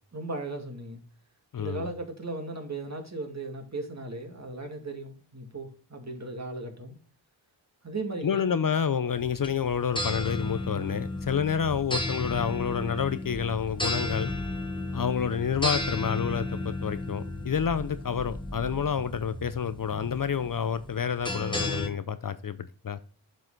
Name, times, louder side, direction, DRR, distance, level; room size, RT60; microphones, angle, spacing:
voice 1, 0.1-1.0 1.6-7.0 7.8-8.8, right 2 dB, 35° right, 2.2 m, -37 dB
voice 2, 1.5-1.9 8.2-14.3 14.9-23.0, left 7 dB, 45° left, 0.6 m, -29 dB
sound 1, 9.1-21.9, left 2 dB, 10° left, 1.5 m, -34 dB
sound 2, 14.3-21.1, equal, 30° left, 1.8 m, -45 dB
7.6 x 5.5 x 3.8 m
cardioid pair, 55°, 46 cm